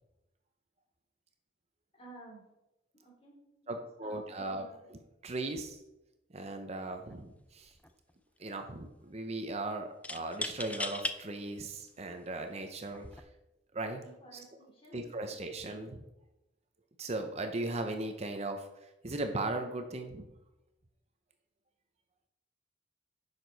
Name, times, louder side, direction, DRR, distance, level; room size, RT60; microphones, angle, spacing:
voice 1, 1.9-2.4 2.9-4.9 14.0-15.4, right 2 dB, 30° left, -3 dB, 3.5 m, -55 dB
voice 2, 3.7-5.8 6.3-7.7 8.4-13.2 13.7-14.0 14.3-14.4 14.9-16.0 17.0-18.7 19.0-20.2, right 2 dB, 35° right, 5 dB, 0.7 m, -38 dB
sound 1, 6.9-7.1 7.5-8.1 10.0-11.2 11.9-12.0 12.9-13.2, left 2 dB, 10° left, 0.4 m, -38 dB
10.5 x 6.7 x 4.0 m, 0.93 s
head